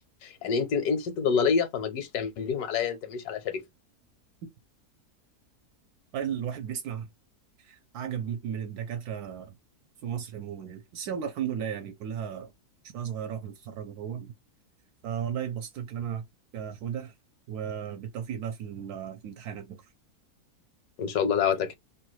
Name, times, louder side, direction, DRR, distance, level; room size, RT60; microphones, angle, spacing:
voice 1, 0.2-3.6 21.0-21.7, left 6 dB, 75° left, 1.2 m, -27 dB
voice 2, 6.1-7.1 7.6-9.5 10.0-12.5 12.9-14.3 15.0-16.2 16.5-17.1 17.5-19.8, right 8 dB, 75° right, 1.1 m, -35 dB
2.9 x 2.2 x 3.0 m
omnidirectional pair, 1.7 m